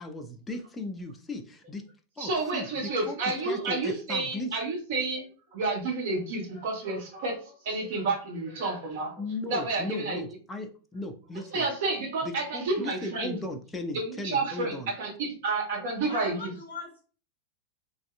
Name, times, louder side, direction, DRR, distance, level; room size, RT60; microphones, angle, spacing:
voice 1, 0.0-1.9 2.2-3.2 3.5-4.5 9.2-11.7 12.2-14.9, left 2 dB, 10° left, 4 dB, 0.5 m, -37 dB
voice 2, 2.2-5.3 5.5-9.2 9.5-10.2 11.5-13.4 13.9-16.5, right 3 dB, 55° right, 0 dB, 1.3 m, -30 dB
voice 3, 16.0-17.0, left 5 dB, 90° right, -2 dB, 1.6 m, -41 dB
3.2 x 2.6 x 2.4 m, 0.39 s
figure-of-eight pair, 90°, 0 cm